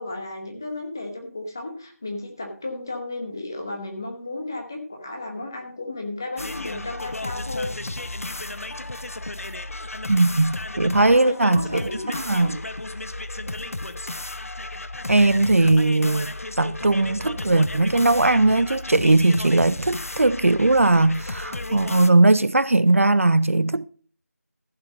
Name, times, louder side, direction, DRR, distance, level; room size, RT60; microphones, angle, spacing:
voice 1, 0.0-7.7 11.0-12.5, left 2 dB, 10° left, 0.9 m, -33 dB
sound 1, 6.4-22.1, left 2 dB, 60° left, 0.9 m, -33 dB
voice 2, 10.1-11.8 12.3-12.6 15.1-23.9, right 2 dB, 55° right, 0.4 m, -19 dB
15.0 x 5.9 x 5.2 m
figure-of-eight pair, 175°, 9 cm